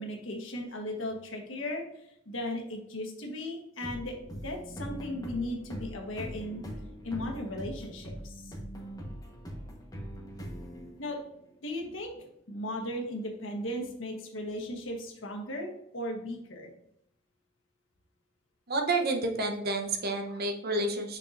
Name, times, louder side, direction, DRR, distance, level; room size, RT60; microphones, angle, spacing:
voice 1, 0.0-6.6 7.0-8.6 11.0-11.2 11.6-16.7, left 1 dB, 80° left, 1 dB, 1.3 m, -37 dB
sound 1, 3.8-11.4, equal, 20° left, 1.2 m, -42 dB
voice 2, 18.7-21.2, right 2 dB, 55° right, 4 dB, 0.9 m, -30 dB
6.7 x 5.5 x 2.5 m, 0.79 s
head